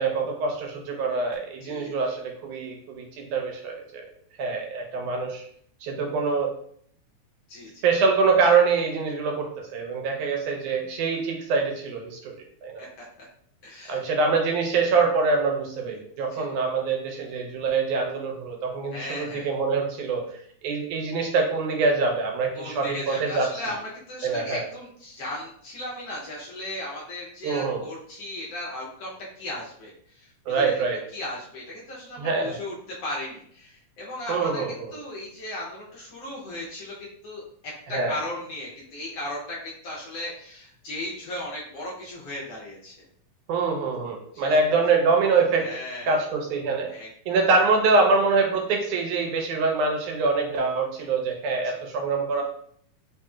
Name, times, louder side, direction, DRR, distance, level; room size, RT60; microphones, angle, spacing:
voice 1, 0.0-4.0 4.4-5.5 5.8-6.5 7.8-12.3 12.6-12.8 13.9-20.3 20.6-23.5 24.2-24.7 27.4-27.8 30.5-31.0 32.2-32.6 34.3-34.9 37.9-38.1 43.5-45.7 46.1-46.9 47.3-52.4, right 4 dB, 85° right, 2 dB, 2.2 m, -24 dB
voice 2, 1.6-1.9 7.5-7.8 12.8-13.3 13.6-14.1 16.3-16.5 18.9-19.5 22.5-30.7 31.1-36.9 37.2-43.0 44.3-44.8 45.5-46.2 46.9-47.4 51.6-51.8, left 1 dB, 70° left, -4 dB, 1.6 m, -36 dB
4.8 x 2.8 x 2.3 m, 0.63 s
omnidirectional pair, 3.4 m